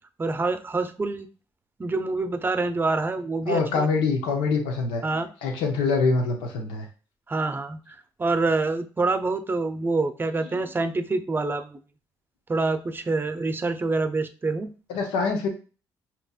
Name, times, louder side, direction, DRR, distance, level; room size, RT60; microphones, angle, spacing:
voice 1, 0.2-1.3 1.8-3.9 5.0-5.3 7.3-11.8 12.5-14.7, right 3 dB, 25° right, 9 dB, 0.6 m, -26 dB
voice 2, 3.5-5.0 5.4-6.8 10.6-10.7 14.9-15.5, left 4 dB, 85° left, 3 dB, 0.9 m, -24 dB
5.2 x 3.0 x 2.4 m, 0.36 s
supercardioid pair, 65°, 9 cm